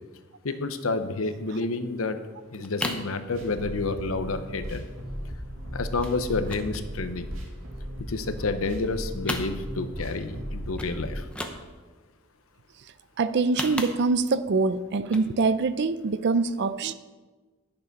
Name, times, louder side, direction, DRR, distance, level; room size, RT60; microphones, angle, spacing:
voice 1, 0.4-2.2 2.5-4.8 5.7-7.2 8.1-11.3, left 3 dB, 80° left, 0.8 m, -29 dB
sound 1, 1.9-2.0 2.3-3.1 3.5-3.9 4.2-4.3 4.5-4.7 5.0-5.5 6.0-6.2 6.5-7.7 8.1-8.9 9.1-10.0 10.4-10.5 10.8-11.0 11.2-12.0 13.3-14.4 15.0-15.3 15.7-15.8, left 1 dB, 5° left, 0.8 m, -35 dB
sound 2, 3.3-11.2, equal, 75° right, 2.2 m, -36 dB
voice 2, 13.2-16.9, right 4 dB, 55° right, 0.5 m, -24 dB
10.5 x 6.8 x 5.3 m
head